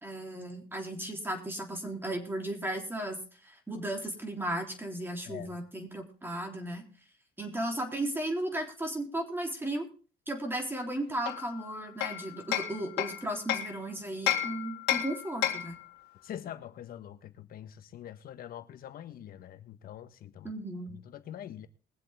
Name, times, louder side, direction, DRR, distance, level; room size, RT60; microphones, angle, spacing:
voice 1, 0.0-3.2 3.4-6.8 7.4-9.9 10.3-15.8 20.4-20.9, right 1 dB, 15° right, 3.6 m, -35 dB
Hammer, 11.3-13.8 14.3-15.8, left 12 dB, 85° left, 2.1 m, -32 dB
voice 2, 16.2-20.5 20.9-21.7, left 10 dB, 60° left, 1.4 m, -44 dB
21.5 x 7.6 x 3.7 m
cardioid pair, 110°, 17 cm